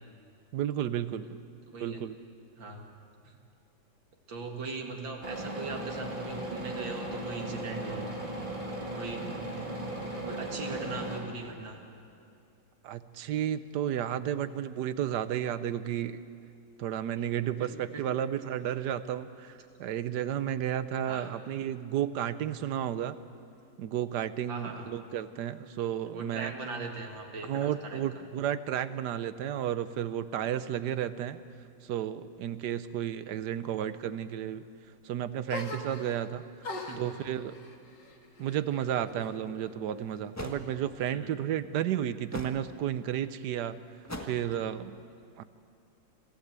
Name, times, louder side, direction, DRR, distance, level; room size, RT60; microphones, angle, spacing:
voice 1, 0.5-1.4 1.8-2.1 12.8-16.2 16.8-23.2 23.8-26.5 27.4-31.4 31.8-34.6 35.0-36.4 37.0-37.6 38.4-43.8 44.2-45.0 45.4-45.5, right 10 dB, 70° right, 13 dB, 1.2 m, -32 dB
voice 2, 1.7-2.0 2.6-2.8 3.2-3.3 4.3-8.1 9.0-9.5 10.2-11.8 17.6-17.7 17.9-18.0 21.1-21.3 24.5-24.9 26.1-28.0 36.7-37.0 41.1-41.3, right 4 dB, 85° right, 2 dB, 2.8 m, -39 dB
sound 1, 5.2-11.2, right 1 dB, 25° right, 3.1 m, -37 dB
sound 2, 35.5-36.3 36.6-39.4 39.7-40.5, left 2 dB, 70° left, 2.5 m, -42 dB
sound 3, 39.4-39.5 40.4-40.6 42.3-42.6 44.1-44.5, left 1 dB, 10° left, 1.4 m, -39 dB
26.0 x 15.5 x 8.2 m, 2.4 s
omnidirectional pair, 2.0 m